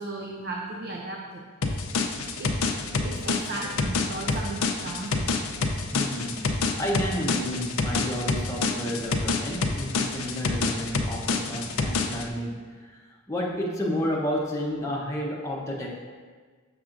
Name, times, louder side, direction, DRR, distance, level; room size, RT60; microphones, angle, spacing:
voice 1, 0.0-1.4 2.4-2.6 3.0-5.4, right 2 dB, 50° right, 0 dB, 0.5 m, -35 dB
sound 1, 1.6-12.3, left 4 dB, 80° left, 0.5 m, -27 dB
voice 2, 5.9-13.0 13.3-15.9, equal, 15° left, -3 dB, 0.7 m, -31 dB
7.0 x 6.0 x 2.5 m, 1.5 s
head